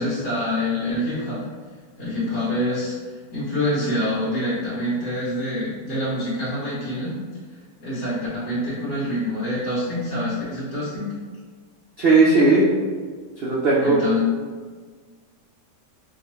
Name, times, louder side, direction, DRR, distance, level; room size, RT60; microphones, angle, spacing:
voice 1, 0.0-1.4 2.0-2.9 3.3-7.2 7.8-11.1 13.8-14.3, left 1 dB, 60° left, -12 dB, 1.7 m, -26 dB
voice 2, 12.0-12.7 13.4-14.0, right 3 dB, 70° right, -6 dB, 0.5 m, -16 dB
5.0 x 2.4 x 3.0 m, 1.5 s
omnidirectional pair, 1.8 m